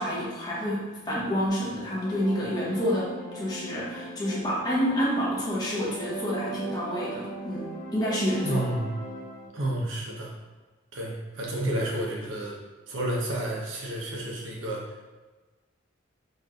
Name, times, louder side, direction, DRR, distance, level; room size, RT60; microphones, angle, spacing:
voice 1, 0.0-8.7, equal, 20° left, -7 dB, 1.0 m, -28 dB
sound 1, 1.6-9.5, right 1 dB, 40° left, 0.6 m, -40 dB
voice 2, 8.4-8.9 9.5-10.3 10.9-12.6 12.9-15.1, right 1 dB, 70° right, -2 dB, 0.8 m, -31 dB
4.5 x 3.1 x 2.4 m, 1.2 s
head